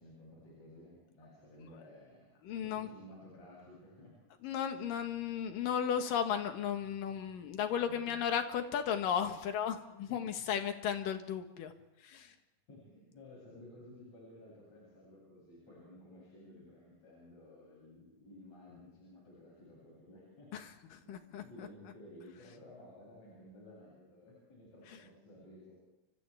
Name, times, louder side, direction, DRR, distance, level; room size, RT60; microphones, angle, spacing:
voice 1, 0.0-2.3 2.6-4.1 7.1-7.2 7.7-8.2 10.1-10.2 12.2-12.3 12.7-20.5 20.8-25.8, left 1 dB, 50° left, -5 dB, 9.0 m, -55 dB
voice 2, 2.4-2.9 4.4-11.7 12.0-12.3 20.5-20.6 20.9-21.7, left 8 dB, 70° left, 6 dB, 3.1 m, -35 dB
29.5 x 25.5 x 3.5 m, 0.95 s
omnidirectional pair, 4.1 m